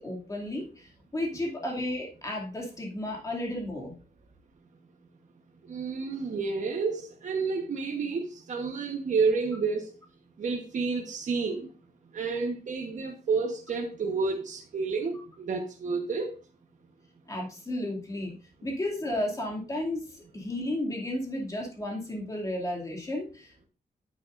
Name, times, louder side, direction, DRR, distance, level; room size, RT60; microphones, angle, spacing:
voice 1, 0.0-3.9 17.3-18.3 18.6-23.7, left 1 dB, 20° left, 2.6 m, -33 dB
voice 2, 5.7-9.9 10.4-11.7 12.1-16.3, right 4 dB, 50° right, 1.2 m, -30 dB
9.5 x 9.0 x 2.6 m
wide cardioid pair, 175°, 16 cm